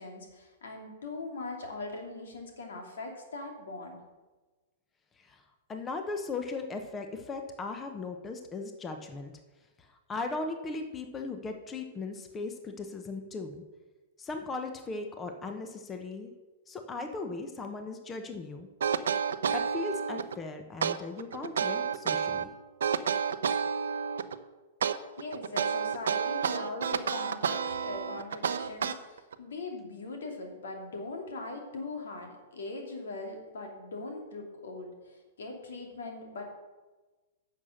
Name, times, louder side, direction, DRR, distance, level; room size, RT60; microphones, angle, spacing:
voice 1, 0.0-4.0 25.2-36.4, left 2 dB, 85° left, 3 dB, 2.5 m, -40 dB
voice 2, 5.7-9.3 9.8-13.6 14.2-16.3 16.7-18.7 19.5-22.5, left 3 dB, 20° left, 5 dB, 1.0 m, -38 dB
sound 1, 18.8-20.4 20.8-22.4 22.8-24.4 24.8-29.3, right 7 dB, 85° right, 0.6 m, -30 dB
9.8 x 6.5 x 6.5 m, 1.2 s
hypercardioid pair, 130°, 0 cm